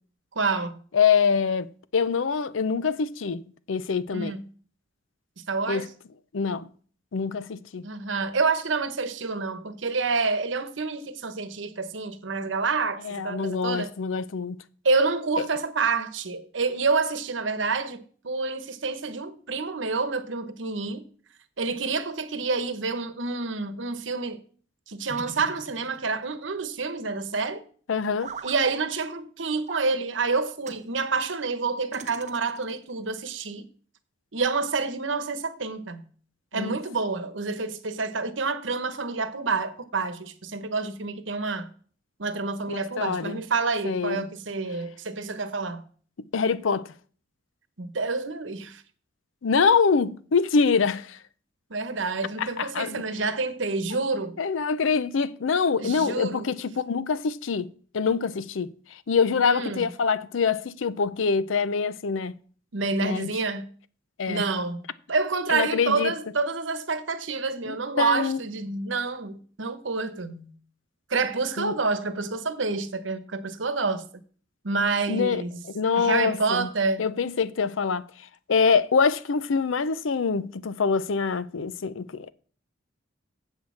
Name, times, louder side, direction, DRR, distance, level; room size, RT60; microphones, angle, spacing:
voice 1, 0.3-0.7 4.1-4.4 5.4-5.9 7.8-13.9 14.8-21.0 21.6-24.4 24.9-27.6 28.4-33.6 34.3-36.1 36.5-41.7 42.2-45.8 47.8-48.8 51.7-54.4 55.8-56.5 59.4-59.9 62.7-63.7 64.3-70.5 71.1-74.0 74.6-75.6 75.9-77.0, right 4 dB, 70° right, 1.0 m, -28 dB
voice 2, 0.9-3.4 3.7-4.4 5.7-5.9 6.3-6.7 7.1-7.9 13.0-14.6 15.4-15.5 27.9-28.3 36.5-36.8 42.7-43.4 43.8-44.3 46.3-46.9 49.4-51.2 52.4-53.0 54.4-62.4 63.0-63.3 64.2-64.5 65.5-66.1 67.7-68.4 71.6-71.7 75.1-75.4 75.7-76.7 77.0-78.1 78.5-82.3, left 5 dB, 80° left, 0.5 m, -25 dB
sound 1, 25.1-26.3 28.2-28.6 29.7-29.9 30.6-30.9 31.9-32.8, right 5 dB, 35° right, 0.7 m, -40 dB
8.0 x 6.2 x 7.1 m
head